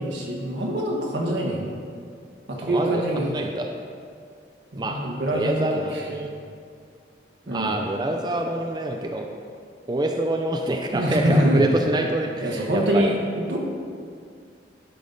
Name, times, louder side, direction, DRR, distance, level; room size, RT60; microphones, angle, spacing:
voice 1, 0.0-1.8 2.5-3.3 4.7-6.3 7.5-7.8 10.9-11.7 12.4-13.1 13.5-13.6, right 1 dB, 85° right, -2 dB, 1.5 m, -24 dB
voice 2, 2.6-3.7 4.8-5.0 5.3-6.3 7.5-9.3 9.9-13.1, right 1 dB, 25° right, 2 dB, 0.4 m, -26 dB
11.5 x 5.3 x 4.0 m, 2.3 s
head